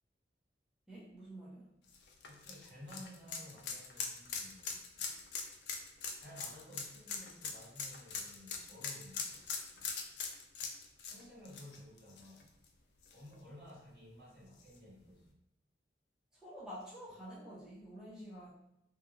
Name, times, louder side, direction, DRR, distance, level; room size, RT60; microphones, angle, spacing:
voice 1, 0.9-1.7 5.0-5.1 9.8-9.9 16.3-18.5, equal, 5° right, -10 dB, 0.5 m, -49 dB
sound 1, 1.9-12.7 13.0-13.1 14.6-14.7, left 5 dB, 65° left, 0.4 m, -42 dB
voice 2, 2.2-4.8 6.2-9.4 11.0-12.5 13.1-15.3, left 1 dB, 60° right, -8 dB, 1.4 m, -54 dB
2.8 x 2.5 x 2.5 m, 0.82 s
head